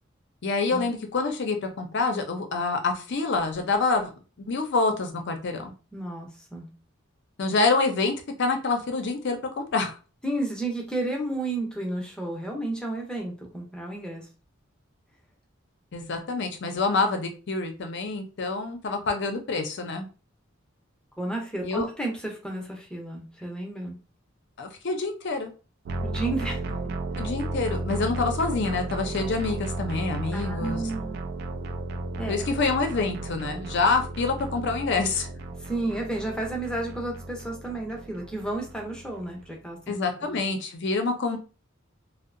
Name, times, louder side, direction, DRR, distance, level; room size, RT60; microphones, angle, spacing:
voice 1, 0.4-4.1 4.5-5.7 7.4-9.9 15.9-20.1 21.6-21.9 24.6-25.5 27.2-30.8 32.3-35.3 39.9-41.4, left 3 dB, 60° left, 5 dB, 0.5 m, -27 dB
voice 2, 5.9-6.7 10.2-14.3 21.2-24.0 26.0-26.9 30.3-31.3 32.2-32.5 35.6-39.9 40.2-40.4, right 2 dB, 5° left, 0 dB, 0.6 m, -32 dB
sound 1, 25.9-39.5, right 2 dB, 55° right, 0.3 m, -34 dB
2.7 x 2.0 x 2.5 m, 0.34 s
head